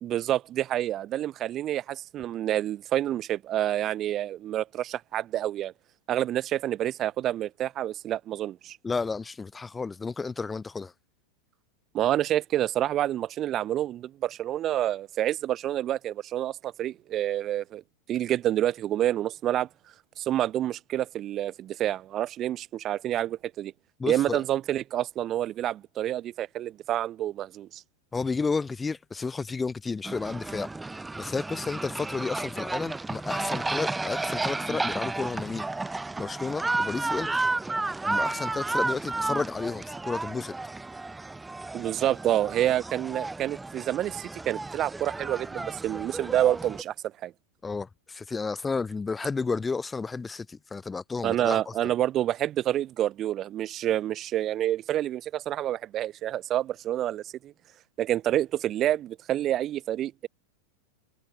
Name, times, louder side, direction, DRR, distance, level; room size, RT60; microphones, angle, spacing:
voice 1, 0.0-5.7 6.1-8.8 11.9-17.8 18.1-19.7 20.2-23.7 24.1-27.8 41.7-47.3 51.2-57.5 58.0-60.3, right 12 dB, 30° right, 1.8 m, -28 dB
voice 2, 8.8-10.9 24.0-24.4 28.1-30.7 31.2-35.7 36.2-37.5 38.1-40.5 47.6-51.6, left 4 dB, 15° left, 0.8 m, -32 dB
sound 1, 30.0-46.8, right 3 dB, 10° right, 1.0 m, -32 dB
figure-of-eight pair, 90°, 0 cm